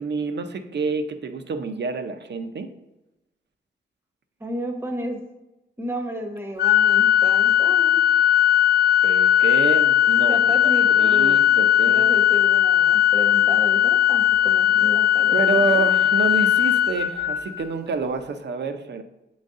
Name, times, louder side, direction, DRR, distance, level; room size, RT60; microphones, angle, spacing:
voice 1, 0.0-2.7 9.0-12.0 15.3-19.0, right 4 dB, 60° right, 8 dB, 0.6 m, -28 dB
voice 2, 4.4-5.2 5.8-8.0 10.3-11.6 11.9-15.8, equal, 10° right, 4 dB, 0.8 m, -32 dB
Organ, 6.6-17.6, left 11 dB, 50° left, 0.5 m, -18 dB
7.4 x 4.0 x 3.7 m, 0.96 s
wide cardioid pair, 140°, 20 cm